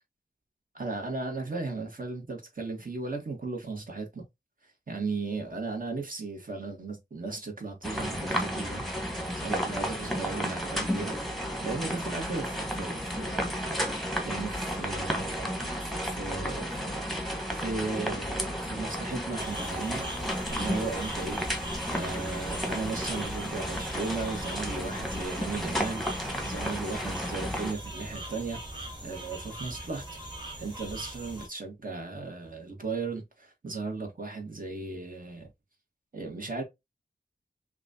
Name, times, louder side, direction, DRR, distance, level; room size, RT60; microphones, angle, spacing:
voice 1, 0.7-4.2 4.6-8.8 9.3-11.2 11.6-13.6 14.2-17.0 17.5-20.1 20.5-21.4 21.9-26.0 26.4-28.6 29.0-30.2 30.6-35.5 36.1-36.6, right 3 dB, 50° right, 1.6 m, -36 dB
sound 1, 7.8-27.7, equal, ahead, 1.2 m, -33 dB
sound 2, 19.4-31.5, right 1 dB, 25° right, 2.0 m, -41 dB
5.9 x 2.5 x 2.8 m
wide cardioid pair, 80°, 18 cm